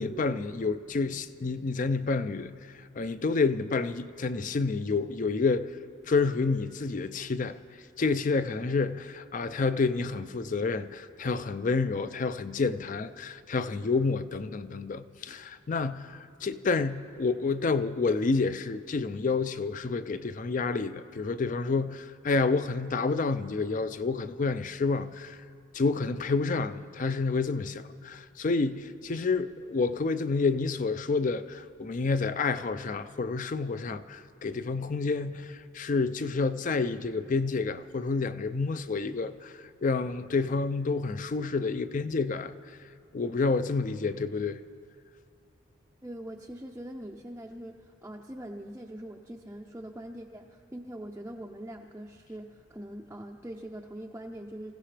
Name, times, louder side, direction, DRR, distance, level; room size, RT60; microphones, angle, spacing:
voice 1, 0.0-5.7 6.1-7.6 8.0-25.4 25.7-42.8 43.1-44.6, left 4 dB, 40° left, 0.4 m, -29 dB
voice 2, 46.0-54.7, right 1 dB, 10° right, 0.5 m, -42 dB
26.5 x 16.0 x 3.3 m
head